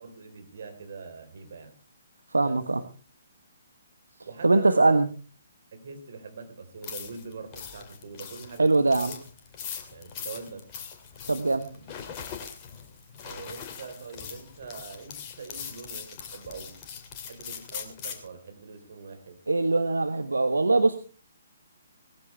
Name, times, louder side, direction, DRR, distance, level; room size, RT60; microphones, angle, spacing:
voice 1, 0.0-1.8 2.4-2.7 4.2-5.0 5.7-9.1 9.9-10.7 11.7-11.8 13.2-16.8 17.2-19.4, right 5 dB, 55° right, 5 dB, 4.0 m, -43 dB
voice 2, 2.3-2.8 4.4-5.1 8.6-9.1 11.3-11.7 19.5-21.0, right 3 dB, 75° right, 9 dB, 1.3 m, -22 dB
sound 1, 6.8-18.3, left 7 dB, 25° left, 2.6 m, -41 dB
19.0 x 14.5 x 3.3 m, 0.36 s
figure-of-eight pair, 130°, 0 cm